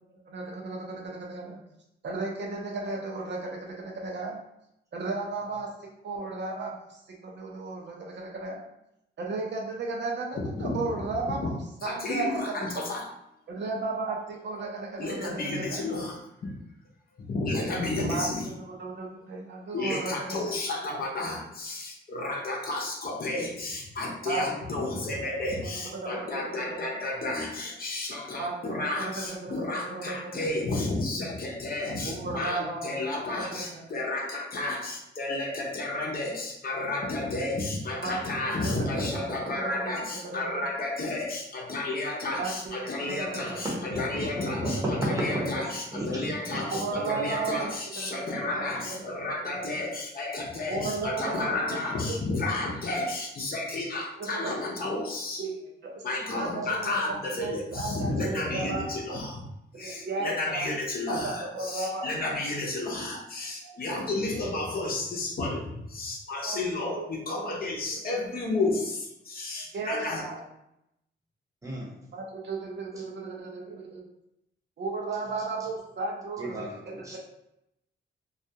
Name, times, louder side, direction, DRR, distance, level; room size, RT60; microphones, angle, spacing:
voice 1, 0.3-1.6 2.0-4.4 4.9-5.7 6.0-6.7 7.2-8.6 9.2-11.5 11.8-12.5 13.5-15.9 18.0-18.3 18.6-20.6 24.3-24.4 24.9-25.3 25.6-26.4 26.8-26.9 28.4-30.3 32.0-32.9 33.3-33.9 38.0-38.2 38.6-39.9 40.2-40.6 42.4-42.7 43.1-43.6 44.0-44.7 46.7-48.4 48.8-49.0 49.4-49.9 50.7-51.8 52.1-52.2 54.2-54.5 55.4-55.6 55.8-56.0 56.3-58.9 59.7-60.7 61.2-62.1 66.4-66.6 67.0-67.1 69.7-70.4 72.1-74.0 74.8-76.7 77.0-77.2, right 3 dB, 65° right, -1 dB, 0.6 m, -35 dB
voice 2, 10.3-10.8 11.4-11.5 11.8-13.1 15.0-16.5 17.2-18.5 19.7-55.4 56.0-59.4 59.8-70.3, left 2 dB, 50° left, -2 dB, 0.6 m, -32 dB
voice 3, 43.1-47.4 48.4-48.9 71.6-71.9 76.4-77.2, equal, 15° right, -3 dB, 0.8 m, -35 dB
2.3 x 2.2 x 2.7 m, 0.82 s
wide cardioid pair, 110°, 20 cm